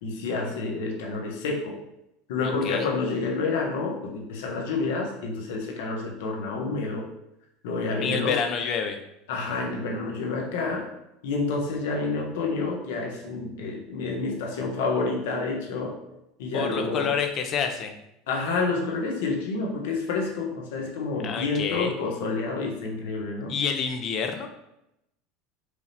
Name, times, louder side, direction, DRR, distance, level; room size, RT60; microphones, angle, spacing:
voice 1, 0.0-1.8 2.3-7.0 7.6-8.3 9.3-10.9 11.2-16.0 16.4-17.1 18.3-23.5, left 3 dB, 80° left, 0 dB, 1.0 m, -29 dB
voice 2, 2.4-2.9 8.0-9.0 16.5-18.0 21.2-21.9 23.5-24.5, left 6 dB, 35° left, 5 dB, 0.5 m, -28 dB
4.7 x 2.7 x 3.3 m, 0.85 s
supercardioid pair, 150°, 0 cm